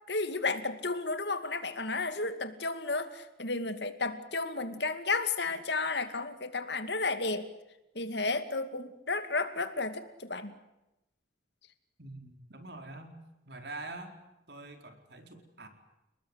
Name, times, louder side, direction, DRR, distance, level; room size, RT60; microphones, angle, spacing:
voice 1, 0.1-7.5 7.9-10.5, left 3 dB, 60° left, 10 dB, 2.4 m, -32 dB
voice 2, 12.0-13.2 13.5-14.1 14.5-15.7, right 2 dB, 55° right, 6 dB, 4.4 m, -45 dB
30.0 x 20.5 x 8.2 m, 0.94 s
head